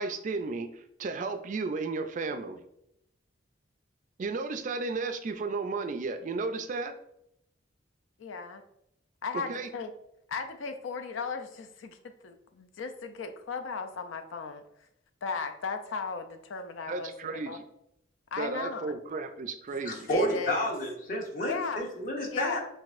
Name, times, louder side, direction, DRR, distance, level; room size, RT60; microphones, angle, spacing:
voice 1, 0.0-2.6 4.2-7.0 9.3-9.7 16.9-17.6 18.4-20.3, right 3 dB, 40° right, 8 dB, 0.3 m, -34 dB
voice 2, 8.2-8.6 9.2-9.9 10.3-14.6 15.2-17.6 18.3-19.0 20.1-20.7 21.4-21.8 22.3-22.6, left 4 dB, 85° left, 7 dB, 0.4 m, -36 dB
voice 3, 19.8-22.6, left 1 dB, 45° left, 1 dB, 0.9 m, -30 dB
5.8 x 2.6 x 2.4 m, 0.78 s
head